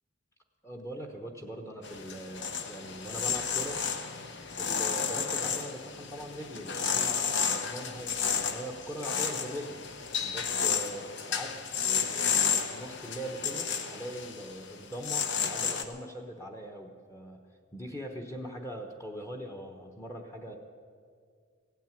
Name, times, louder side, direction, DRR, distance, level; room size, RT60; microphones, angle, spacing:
voice 1, 0.6-3.8 4.6-9.8 10.2-11.6 12.1-20.6, right 1 dB, 15° left, 3 dB, 1.0 m, -41 dB
sound 1, 1.8-15.8, left 6 dB, 60° left, 1.0 m, -32 dB
16.0 x 9.2 x 9.0 m, 2.1 s
head